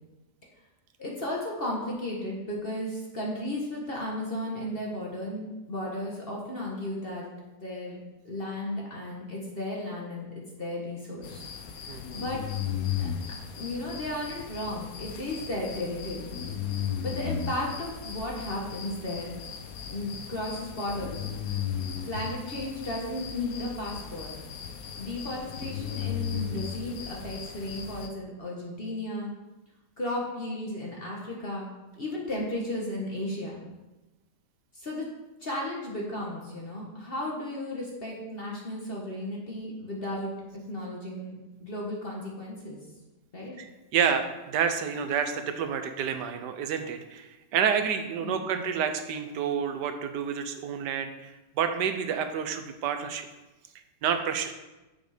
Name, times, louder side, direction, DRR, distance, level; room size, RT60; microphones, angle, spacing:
voice 1, 1.0-7.3 7.6-8.0 8.2-10.3 10.6-11.5 12.1-12.4 13.0-13.1 13.5-16.4 17.0-19.3 19.9-21.2 22.0-24.3 25.0-29.3 30.0-33.6 34.7-35.1 35.4-42.8 43.3-43.6 48.2-48.4, left 1 dB, 35° left, -3 dB, 1.4 m, -34 dB
sound 1, 11.2-28.1, left 8 dB, 65° left, 1.1 m, -36 dB
voice 2, 11.9-12.2 43.6-43.7 43.9-53.3 54.0-54.5, right 7 dB, 85° right, 8 dB, 1.4 m, -29 dB
7.0 x 6.1 x 5.0 m, 1.1 s
omnidirectional pair, 1.8 m